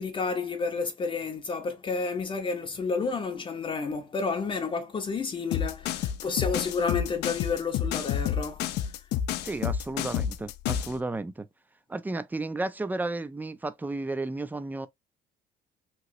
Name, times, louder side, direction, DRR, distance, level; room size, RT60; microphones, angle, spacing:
voice 1, 0.0-8.9, left 4 dB, 30° left, 0.6 m, -31 dB
sound 1, 5.5-11.0, left 9 dB, 80° left, 0.4 m, -29 dB
voice 2, 9.4-11.5 11.9-14.9, right 2 dB, 10° right, 0.4 m, -33 dB
3.0 x 2.8 x 2.5 m
cardioid pair, 110°, 17 cm